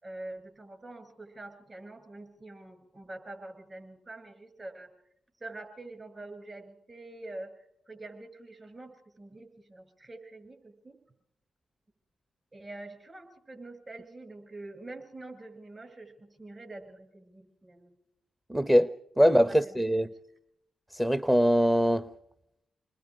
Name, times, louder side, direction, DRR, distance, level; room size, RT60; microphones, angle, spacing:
voice 1, 0.0-4.9 5.4-11.0 12.5-17.9 19.2-19.9, right 2 dB, 35° right, 7 dB, 6.8 m, -46 dB
voice 2, 18.5-20.1 20.9-22.0, equal, 10° right, 15 dB, 0.8 m, -23 dB
28.5 x 21.5 x 4.9 m, 0.78 s
supercardioid pair, 55°, 0 cm